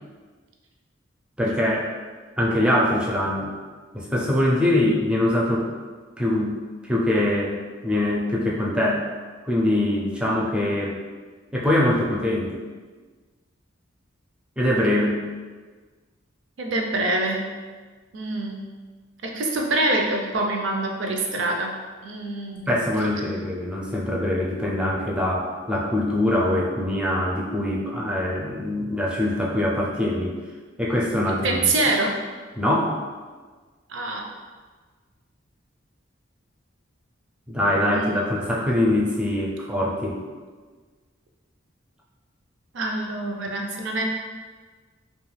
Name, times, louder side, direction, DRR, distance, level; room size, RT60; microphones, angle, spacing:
voice 1, 1.4-1.9 2.4-3.5 3.9-5.7 6.2-6.5 6.8-7.6 7.8-9.1 9.5-11.0 11.5-12.6 14.6-15.2 22.7-30.4 30.8-31.7 32.6-33.0 37.5-40.2, left 1 dB, 5° right, -4 dB, 0.4 m, -23 dB
voice 2, 16.6-17.4 18.1-18.7 19.2-21.7 22.0-22.8 31.3-32.1 33.9-34.2 37.7-38.4 42.7-44.0, right 2 dB, 70° right, 1 dB, 0.4 m, -25 dB
2.5 x 2.3 x 3.2 m, 1.4 s
head